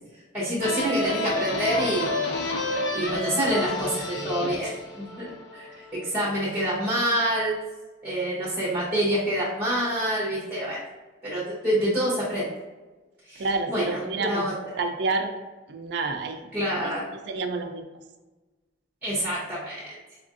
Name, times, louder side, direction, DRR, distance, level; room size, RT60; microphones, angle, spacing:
voice 1, 0.3-2.3 2.9-4.7 5.2-7.5 8.0-10.8 11.2-12.5 13.3-14.5 16.5-17.1 19.0-19.9, equal, 10° right, -8 dB, 0.8 m, -27 dB
sound 1, 0.6-6.0, left 2 dB, 65° left, 0.7 m, -30 dB
voice 2, 13.4-14.5 14.8-15.3 15.7-16.4 16.8-16.9 17.3-17.8, right 3 dB, 60° right, 4 dB, 0.4 m, -28 dB
4.8 x 2.5 x 2.5 m, 1.2 s
head